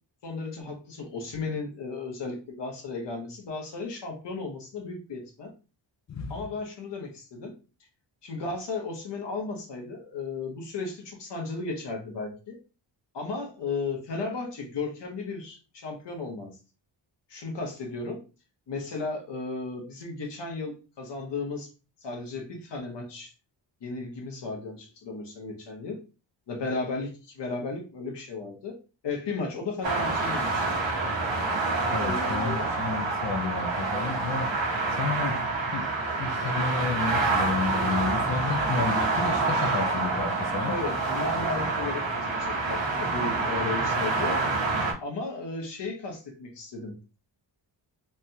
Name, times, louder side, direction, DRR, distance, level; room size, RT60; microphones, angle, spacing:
voice 1, 0.2-5.5 6.3-7.5 8.2-12.6 13.1-16.6 17.3-18.2 18.7-21.7 22.0-23.3 23.8-26.0 26.5-28.8 29.0-30.6 32.0-32.6 40.7-44.4 45.0-46.9, left 3 dB, 65° left, 2 dB, 1.1 m, -35 dB
voice 2, 6.1-6.4 31.9-34.5 34.9-35.9 36.2-40.7, left 4 dB, 40° left, 4 dB, 0.5 m, -31 dB
sound 1, 29.8-44.9, right 3 dB, 75° right, 1.0 m, -27 dB
3.4 x 2.2 x 2.6 m, 0.33 s
wide cardioid pair, 115°, 46 cm